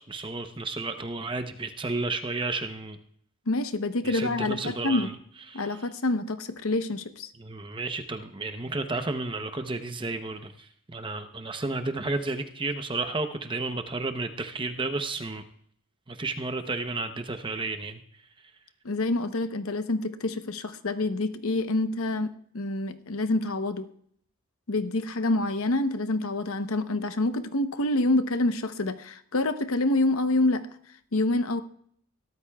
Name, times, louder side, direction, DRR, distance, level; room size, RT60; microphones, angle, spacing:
voice 1, 0.0-3.0 4.0-5.1 5.5-5.8 7.4-15.4 16.1-18.0, right 3 dB, 20° right, 7 dB, 0.7 m, -32 dB
voice 2, 3.5-5.1 5.5-7.3 18.8-23.9 24.7-30.6 31.1-31.6, left 2 dB, 70° left, 9 dB, 0.8 m, -27 dB
21.5 x 13.0 x 2.3 m, 0.64 s
head